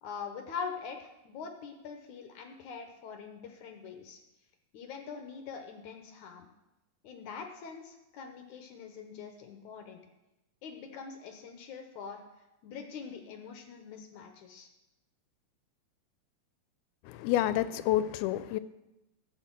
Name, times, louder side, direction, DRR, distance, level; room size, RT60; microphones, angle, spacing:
voice 1, 0.0-4.2 4.7-6.5 7.0-10.0 10.6-12.2 12.6-14.7, left 6 dB, 70° left, 5 dB, 1.9 m, -43 dB
voice 2, 17.1-18.6, left 13 dB, 85° left, 13 dB, 2.5 m, -29 dB
14.5 x 6.4 x 7.4 m, 0.95 s
omnidirectional pair, 4.4 m